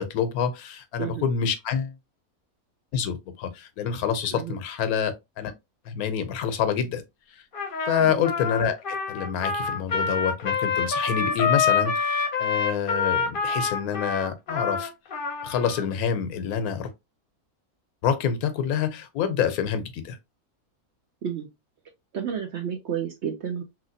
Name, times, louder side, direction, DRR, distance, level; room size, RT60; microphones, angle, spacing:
voice 1, 0.0-2.0 2.9-5.5 5.9-7.0 7.3-7.4 7.9-14.9 15.4-16.9 18.0-20.2, left 7 dB, 80° left, 1.1 m, -27 dB
Trumpet, 7.5-15.8, left 5 dB, 45° left, 0.7 m, -26 dB
voice 2, 22.1-23.6, right 8 dB, 65° right, 0.7 m, -31 dB
3.1 x 2.8 x 2.6 m
omnidirectional pair, 1.6 m